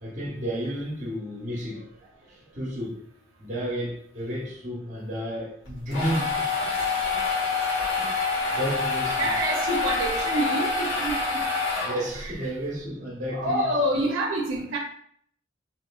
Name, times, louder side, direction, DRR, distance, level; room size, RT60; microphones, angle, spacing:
voice 1, 0.0-3.1 3.4-6.7 7.1-7.2 7.8-8.1 8.5-9.3 11.8-13.7, equal, 35° right, 0.8 m, -32 dB
sound 1, 5.7-12.3, left 3 dB, 70° left, 1.2 m, -27 dB
voice 2, 9.1-11.2 12.1-12.4 13.3-14.8, right 1 dB, 75° right, 0.5 m, -27 dB
3.0 x 2.9 x 2.3 m
head